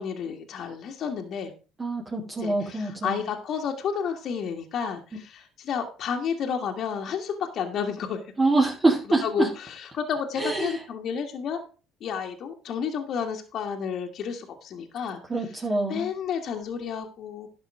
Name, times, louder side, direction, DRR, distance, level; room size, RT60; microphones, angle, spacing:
voice 1, 0.0-1.5 2.4-8.2 9.2-11.6 12.0-15.2 15.9-17.5, left 7 dB, 55° left, 2 dB, 1.7 m, -31 dB
voice 2, 1.8-3.2 8.4-9.5 10.4-10.8 15.3-16.1, right 2 dB, 25° right, -2 dB, 2.2 m, -25 dB
11.5 x 5.5 x 4.9 m, 0.35 s
hypercardioid pair, 70°, 0 cm